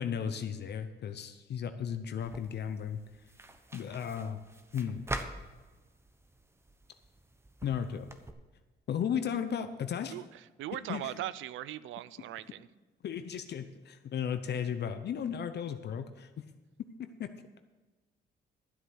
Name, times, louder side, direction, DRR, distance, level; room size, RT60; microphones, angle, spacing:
voice 1, 0.0-3.0 3.7-4.4 4.7-5.0 7.6-8.1 8.9-10.1 10.9-11.1 13.0-16.3 17.0-17.3, left 8 dB, 60° left, 9 dB, 0.8 m, -35 dB
sound 1, 2.2-8.3, right 1 dB, 15° right, 1.0 m, -45 dB
voice 2, 10.6-12.7, right 13 dB, 75° right, 17 dB, 0.5 m, -39 dB
12.5 x 8.0 x 6.2 m, 1.3 s
cardioid pair, 90°, 20 cm